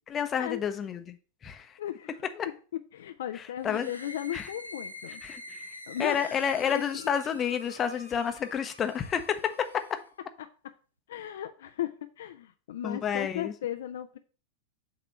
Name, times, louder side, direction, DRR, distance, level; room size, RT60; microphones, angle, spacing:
voice 1, 0.1-1.2 1.4-1.8 2.4-2.5 3.3-3.9 4.3-4.5 5.2-10.0 12.8-13.5, left 8 dB, 25° left, 0.7 m, -30 dB
voice 2, 1.8-2.1 2.9-5.2 5.5-6.8 11.1-11.9 12.2-14.2, left 11 dB, 60° left, 0.5 m, -36 dB
sound 1, 3.6-10.1, left 1 dB, 90° right, 0.7 m, -46 dB
7.5 x 3.0 x 6.1 m
figure-of-eight pair, 90°, 0 cm